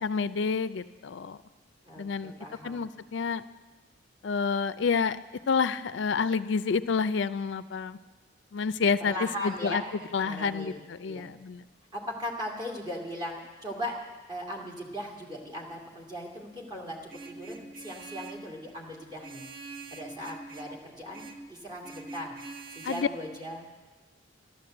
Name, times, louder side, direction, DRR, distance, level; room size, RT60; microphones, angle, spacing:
voice 1, 0.0-1.4 2.0-2.3 2.6-3.4 4.2-5.2 5.5-8.0 8.5-9.8 10.1-11.6 22.8-23.1, left 5 dB, 65° left, 14 dB, 0.4 m, -29 dB
voice 2, 1.8-2.8 9.0-11.3 11.9-13.9 14.3-17.0 17.3-19.4 19.9-22.3 22.7-23.7, equal, 20° right, -1 dB, 2.4 m, -38 dB
Vehicle horn car horn honking, 17.1-18.5 19.2-20.8 21.1-21.5 21.8-23.0, right 3 dB, 45° right, 1.1 m, -44 dB
13.0 x 12.5 x 7.8 m, 1.2 s
head